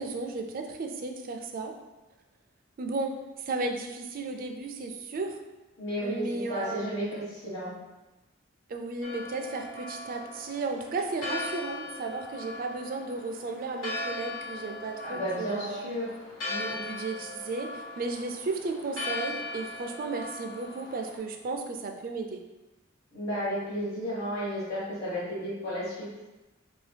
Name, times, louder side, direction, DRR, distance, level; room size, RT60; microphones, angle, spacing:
voice 1, 0.0-1.7 2.8-3.2 3.5-5.4 6.0-7.0 8.7-15.8 16.6-22.4, right 3 dB, 45° right, 4 dB, 0.4 m, -34 dB
voice 2, 5.8-7.7 15.0-16.1 16.4-16.7 23.1-26.0, equal, 55° left, -11 dB, 1.1 m, -33 dB
Church bell, 9.0-21.2, left 2 dB, 70° left, 0.7 m, -39 dB
2.7 x 2.7 x 3.3 m, 1.1 s
head